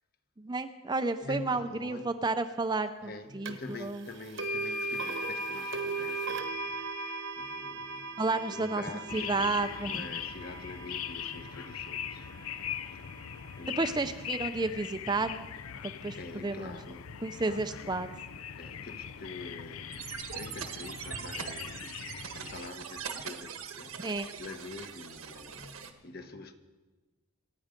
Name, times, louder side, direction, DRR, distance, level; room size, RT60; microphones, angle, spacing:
voice 1, 0.4-4.0 8.2-8.8 9.1-10.1 13.8-15.5 15.8-16.2 16.4-16.7 17.2-18.1 24.0-24.3, right 3 dB, 20° right, 0.5 m, -31 dB
voice 2, 1.2-2.1 3.0-13.2 13.6-14.0 16.2-17.9 18.6-26.5, left 2 dB, 45° left, 1.2 m, -46 dB
sound 1, 3.5-3.6 4.4-12.4, right 2 dB, 55° right, 1.1 m, -37 dB
sound 2, 9.1-22.7, left 9 dB, 80° left, 0.6 m, -41 dB
sound 3, 19.9-25.9, right 7 dB, 75° right, 1.3 m, -42 dB
26.5 x 9.4 x 5.2 m
head